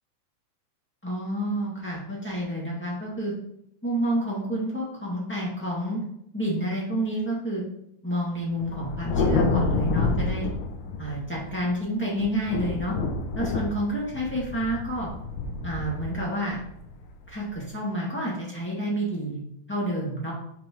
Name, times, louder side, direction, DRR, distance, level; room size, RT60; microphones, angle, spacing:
voice 1, 1.0-3.3 3.8-6.0 6.3-7.6 8.0-10.4 11.0-12.9 13.3-15.1 15.6-16.6 17.3-19.4 19.7-20.3, right 1 dB, 5° left, -6 dB, 1.5 m, -29 dB
Thunder, 8.6-11.7 12.2-17.5, left 3 dB, 90° left, 2.2 m, -28 dB
6.0 x 5.1 x 3.1 m, 0.74 s
omnidirectional pair, 3.4 m